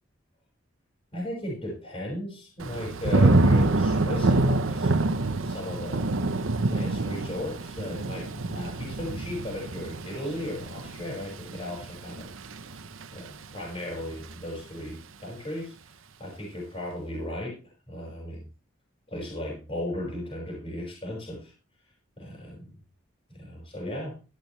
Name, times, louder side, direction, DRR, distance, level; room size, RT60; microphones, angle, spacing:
voice 1, 1.1-4.9 5.3-6.1 6.7-12.3 12.7-12.8 13.1-15.7 16.2-17.6 17.9-18.5 19.1-21.5 22.2-22.7 23.3-24.2, left 1 dB, 30° left, -3 dB, 5.6 m, -36 dB
Thunder / Rain, 2.6-13.5 13.9-14.4, right 2 dB, 75° right, 0.9 m, -26 dB
14.0 x 12.0 x 3.3 m, 0.34 s
head